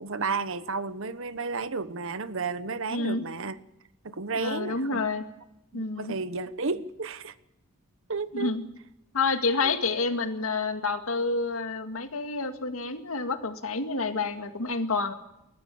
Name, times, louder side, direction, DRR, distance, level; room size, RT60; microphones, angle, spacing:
voice 1, 0.0-3.6 4.0-5.0 5.7-7.3 8.1-8.5 9.6-9.8, right 4 dB, 60° right, 14 dB, 1.1 m, -32 dB
voice 2, 2.9-3.2 4.3-5.2 5.7-6.1 8.3-8.6 9.1-15.1, left 3 dB, 70° left, 8 dB, 2.0 m, -28 dB
21.5 x 14.5 x 8.5 m, 0.87 s
head